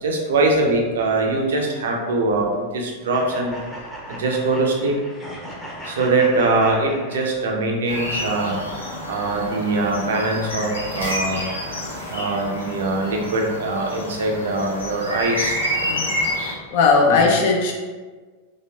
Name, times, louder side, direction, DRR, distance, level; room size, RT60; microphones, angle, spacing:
voice 1, 0.0-3.6 4.2-5.0 5.9-8.6 9.1-11.5 12.1-15.6 17.1-17.2, right 2 dB, 60° right, 0 dB, 0.5 m, -22 dB
sound 1, 3.1-7.7, equal, 10° left, 0.8 m, -37 dB
sound 2, 7.9-16.5, equal, 75° left, 0.9 m, -28 dB
voice 2, 16.7-17.7, left 4 dB, 50° left, 0 dB, 0.6 m, -17 dB
3.2 x 2.9 x 2.8 m, 1.4 s
figure-of-eight pair, 90°, 0 cm